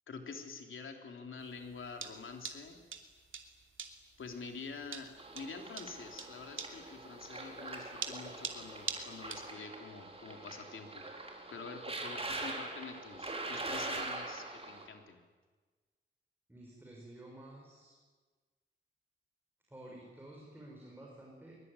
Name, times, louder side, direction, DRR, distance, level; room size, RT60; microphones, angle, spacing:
voice 1, 0.1-2.8 4.2-11.1 11.5-15.2, left 4 dB, 90° left, 4 dB, 3.6 m, -47 dB
sound 1, 1.4-9.5, right 6 dB, 90° right, 2.7 m, -43 dB
sound 2, 5.2-14.8, right 2 dB, 30° right, 4.5 m, -43 dB
voice 2, 16.5-17.9 19.7-21.6, right 1 dB, 10° right, -2 dB, 6.1 m, -52 dB
23.0 x 23.0 x 9.8 m, 1.4 s
wide cardioid pair, 125°, 20 cm